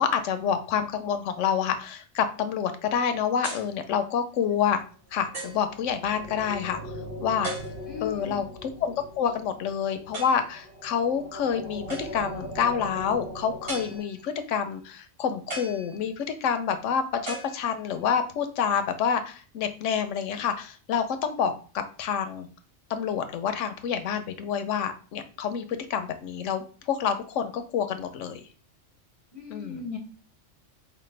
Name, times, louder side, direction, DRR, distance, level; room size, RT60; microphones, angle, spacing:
voice 1, 0.0-4.8 5.1-6.9 7.2-7.5 8.0-22.5 22.9-28.4 29.5-29.8, left 7 dB, 85° left, 9 dB, 0.9 m, -28 dB
sound 1, 3.4-3.8 4.5-4.6 5.3-5.7 7.4-8.1 10.1-10.6 11.9-12.4 13.7-14.4 15.5-16.4 17.3-18.1, right 2 dB, 50° right, 2.0 m, -38 dB
sound 2, 5.1-14.0, equal, 75° right, 1.6 m, -40 dB
voice 2, 7.9-8.4 29.3-30.0, left 6 dB, 40° left, 2 dB, 0.6 m, -37 dB
5.2 x 2.2 x 3.2 m, 0.38 s
omnidirectional pair, 1.2 m